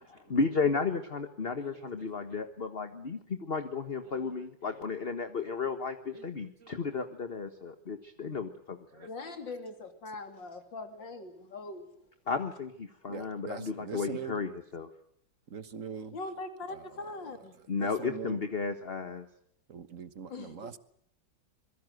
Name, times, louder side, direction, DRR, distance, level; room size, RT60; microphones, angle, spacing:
voice 1, 0.3-9.1 12.3-14.9 17.7-19.2, left 4 dB, 35° left, 1.5 m, -33 dB
voice 2, 9.1-11.8 16.1-17.6 20.3-20.7, left 3 dB, 75° left, 3.4 m, -41 dB
voice 3, 13.1-14.3 15.5-16.1 17.8-18.4 19.7-20.8, right 6 dB, 45° right, 1.5 m, -42 dB
26.0 x 22.5 x 7.9 m
omnidirectional pair, 2.0 m